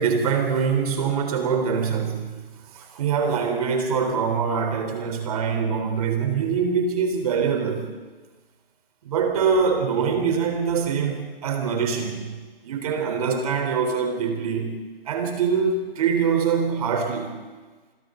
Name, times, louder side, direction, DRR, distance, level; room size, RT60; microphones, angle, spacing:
voice 1, 0.0-2.4 2.7-7.9 9.0-12.4 12.6-14.8 15.1-17.4, right 6 dB, 40° right, 4 dB, 4.0 m, -24 dB
28.5 x 26.0 x 4.0 m, 1.3 s
hypercardioid pair, 160°, 29 cm